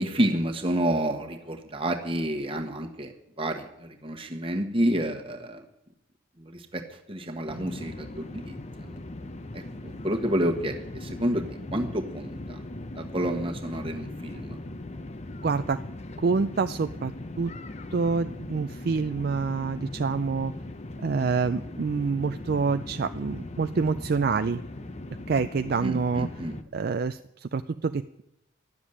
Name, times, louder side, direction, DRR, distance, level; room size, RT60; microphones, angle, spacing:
voice 1, 0.0-5.6 6.4-9.0 9.5-12.6 12.9-14.6 25.8-26.5, right 1 dB, 25° right, 4 dB, 1.4 m, -29 dB
sound 1, 7.5-26.6, left 2 dB, 35° left, 0.7 m, -39 dB
voice 2, 15.4-15.8 16.2-17.1 17.4-17.5 17.9-20.5 21.0-24.6 25.3-26.3 26.7-28.2, right 4 dB, 50° right, 10 dB, 0.4 m, -27 dB
12.0 x 7.2 x 9.9 m, 0.83 s
head